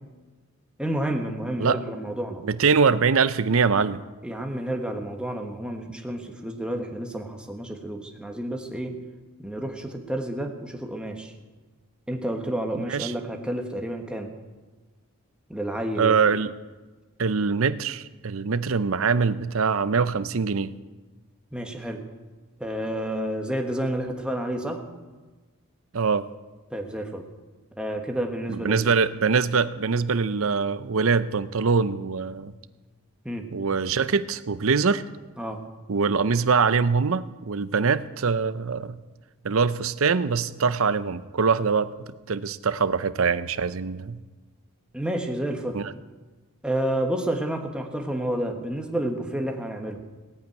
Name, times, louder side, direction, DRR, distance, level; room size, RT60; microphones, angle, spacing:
voice 1, 0.8-2.5 4.2-9.0 9.4-11.3 12.1-14.3 15.5-16.1 21.5-22.0 22.6-24.8 26.7-27.3 27.8-28.8 33.2-33.5 35.4-35.6 44.9-45.8 46.6-50.0, right 1 dB, 5° right, 3 dB, 1.3 m, -30 dB
voice 2, 2.4-4.0 12.8-13.1 16.0-16.5 17.2-20.7 25.9-26.3 28.5-32.5 33.5-35.0 35.9-39.0 39.4-44.2 45.7-45.9, right 5 dB, 70° right, 14 dB, 0.6 m, -23 dB
17.0 x 8.6 x 9.2 m, 1.3 s
head